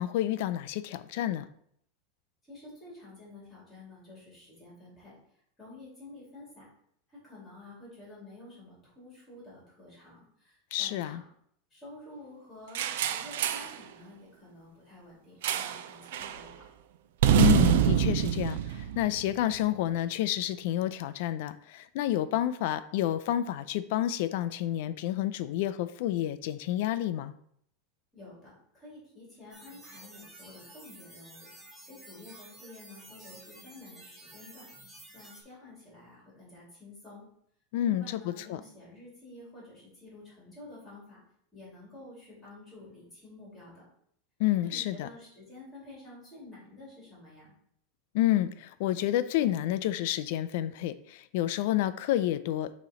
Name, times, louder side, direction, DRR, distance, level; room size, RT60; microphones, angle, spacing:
voice 1, 0.0-1.5 10.7-11.2 17.4-18.6 19.0-27.3 37.7-38.6 44.4-45.1 48.1-52.8, left 13 dB, 50° left, 13 dB, 0.4 m, -29 dB
voice 2, 2.5-5.1 5.6-6.6 7.1-11.2 11.7-16.7 28.1-31.5 31.9-34.7 35.1-37.2 37.8-41.2 41.5-43.8 44.6-47.5, left 2 dB, 10° left, -5 dB, 2.6 m, -50 dB
sound 1, 12.7-13.8 15.4-15.9 16.1-16.4 17.2-19.5, right 10 dB, 65° right, 0.4 m, -25 dB
sound 2, 29.5-35.4, right 1 dB, 10° right, 1.1 m, -51 dB
6.8 x 3.1 x 4.9 m, 0.68 s
supercardioid pair, 180°, 0 cm